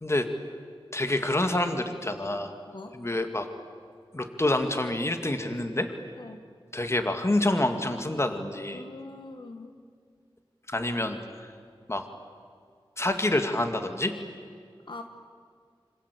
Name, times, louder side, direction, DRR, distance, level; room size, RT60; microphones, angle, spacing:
voice 1, 0.9-2.6 3.0-3.5 4.1-5.9 6.7-8.8 10.7-11.5 11.9-12.0 13.0-14.1, left 1 dB, 30° left, 6 dB, 2.2 m, -27 dB
voice 2, 2.7-3.0 6.2-6.4 8.7-9.7 14.9-15.0, left 2 dB, 60° left, 5 dB, 1.9 m, -42 dB
26.5 x 26.0 x 8.4 m, 2.1 s
wide cardioid pair, 75°, 9 cm